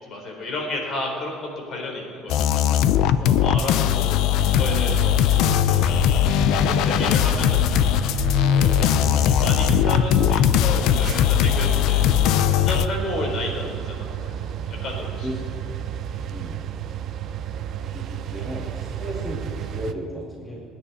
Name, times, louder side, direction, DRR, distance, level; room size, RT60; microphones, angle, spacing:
voice 1, 0.0-2.7 3.2-4.2 4.5-5.2 5.7-6.0 6.5-7.6 8.6-8.9 9.3-12.1 12.5-14.3 14.7-15.3, left 2 dB, 45° left, 1 dB, 4.1 m, -32 dB
sound 1, 2.3-12.9, left 10 dB, 70° left, 0.6 m, -19 dB
sound 2, 4.4-19.9, right 10 dB, 50° right, 0.8 m, -32 dB
voice 2, 15.2-15.6 16.3-16.6 17.9-20.6, equal, 15° left, -4 dB, 2.5 m, -34 dB
29.0 x 10.0 x 4.3 m, 2.7 s
cardioid pair, 140°, 0 cm